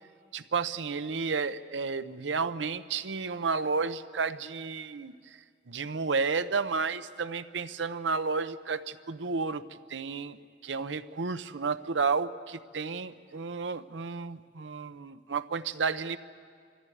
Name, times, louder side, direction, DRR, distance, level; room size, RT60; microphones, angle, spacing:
voice 1, 0.3-5.1 5.7-9.6 9.9-10.4 10.6-16.2, right 4 dB, 80° right, 12 dB, 0.7 m, -32 dB
24.0 x 14.5 x 9.2 m, 2.1 s
head